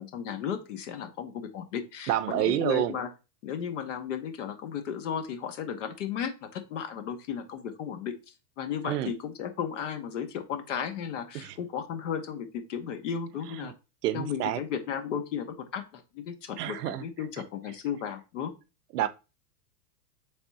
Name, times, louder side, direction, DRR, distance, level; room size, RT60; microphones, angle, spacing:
voice 1, 0.0-3.1 3.4-8.1 8.6-13.7 14.1-18.5, left 8 dB, 50° left, 0.8 m, -34 dB
voice 2, 2.1-3.0 8.8-9.1 11.3-11.6 13.5-13.7 14.0-14.6 16.6-17.1 18.9-19.1, right 13 dB, 70° right, 0.6 m, -28 dB
3.5 x 3.5 x 4.0 m
supercardioid pair, 180°, 49 cm